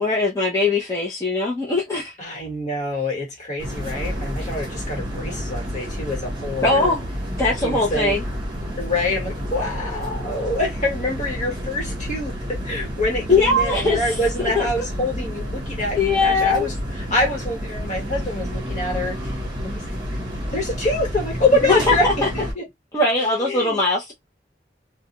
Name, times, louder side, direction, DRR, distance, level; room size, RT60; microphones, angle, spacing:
voice 1, 0.0-2.1 6.6-7.0 7.4-8.2 13.3-14.8 16.0-16.7 21.9-22.3 22.9-24.1, left 2 dB, 15° left, 0.6 m, -21 dB
voice 2, 2.2-6.9 7.6-8.2 8.7-19.3 19.6-19.9 20.5-22.1 22.3-22.6 23.2-23.8, left 2 dB, 40° left, 1.3 m, -25 dB
sound 1, 3.6-22.5, equal, 25° right, 0.9 m, -30 dB
2.3 x 2.2 x 2.9 m
head